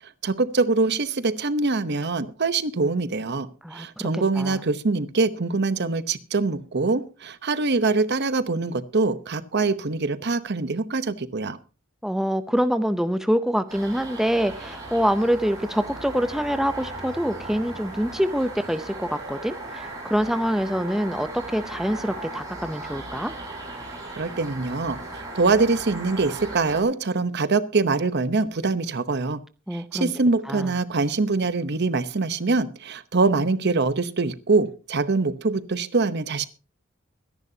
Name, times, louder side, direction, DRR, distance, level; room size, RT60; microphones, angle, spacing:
voice 1, 0.2-11.6 24.2-29.4 29.7-36.5, right 3 dB, 55° right, 13 dB, 0.9 m, -24 dB
voice 2, 3.6-4.6 12.0-23.3 29.7-30.1 30.5-30.7, equal, ahead, 10 dB, 0.7 m, -25 dB
sound 1, 13.7-26.8, right 2 dB, 20° right, 7.4 m, -37 dB
23.5 x 11.0 x 2.8 m, 0.34 s
head